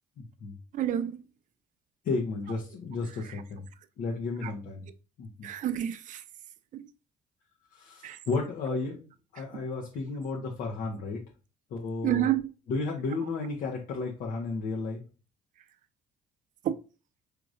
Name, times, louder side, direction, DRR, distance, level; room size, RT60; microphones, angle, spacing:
voice 1, 0.2-0.5 2.0-3.6 4.0-4.9 5.2-5.5 7.7-9.0 9.3-11.2 11.7-12.3 12.7-15.0, left 3 dB, 65° left, 1.0 m, -33 dB
voice 2, 0.7-1.2 3.2-3.4 4.4-4.5 5.4-6.2 6.7-6.9 8.0-8.2 9.5-9.6 12.0-12.5 16.6-16.8, right 11 dB, 50° right, 0.5 m, -29 dB
4.9 x 2.9 x 2.6 m
cardioid pair, 105°, 16 cm